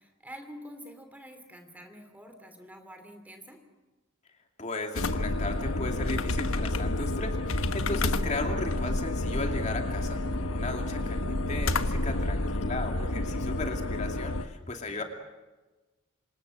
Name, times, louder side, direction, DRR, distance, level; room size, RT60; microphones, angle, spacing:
voice 1, 0.0-3.6 14.8-15.0, equal, 10° right, 6 dB, 2.8 m, -47 dB
voice 2, 4.6-15.0, left 2 dB, 35° left, 3 dB, 2.6 m, -36 dB
sound 1, 4.9-14.4, left 2 dB, 90° left, 1.2 m, -29 dB
27.0 x 26.5 x 6.4 m, 1.2 s
head